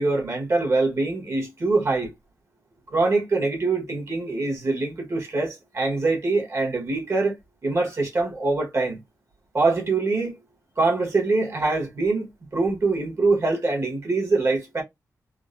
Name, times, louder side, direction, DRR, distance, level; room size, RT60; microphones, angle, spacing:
voice 1, 0.0-2.1 2.9-7.4 7.6-9.0 9.5-10.4 10.8-14.8, right 3 dB, 50° right, 1.4 m, -24 dB
3.7 x 2.1 x 2.6 m
wide cardioid pair, 95°, 6 cm